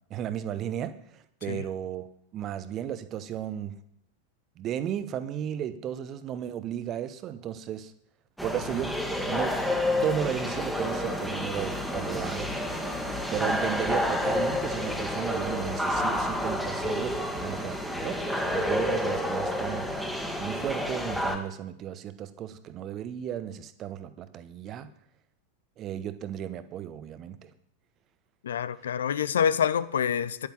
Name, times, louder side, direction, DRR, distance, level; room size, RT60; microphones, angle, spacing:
voice 1, 0.1-2.1 2.3-3.8 4.6-7.9 8.4-9.0 9.3-9.6 9.9-12.5 13.3-19.9 20.4-24.9 25.8-27.5, right 10 dB, 30° right, 1.0 m, -34 dB
sound 1, 8.4-21.4, left 1 dB, ahead, 1.9 m, -29 dB
voice 2, 28.4-30.5, left 8 dB, 65° left, 0.7 m, -27 dB
11.0 x 9.5 x 7.4 m
figure-of-eight pair, 90°, 0 cm